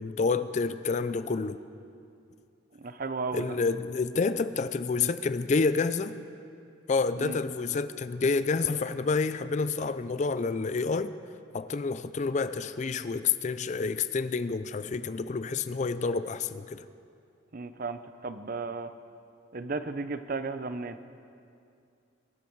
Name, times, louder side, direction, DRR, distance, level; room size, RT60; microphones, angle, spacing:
voice 1, 0.0-1.6 3.3-6.1 6.9-11.1 11.5-16.8, left 4 dB, 35° left, 13 dB, 0.4 m, -28 dB
voice 2, 2.7-3.5 7.2-7.4 17.5-18.9 19.5-21.0, right 3 dB, 45° right, 11 dB, 0.6 m, -34 dB
22.5 x 11.5 x 4.6 m, 2.4 s
head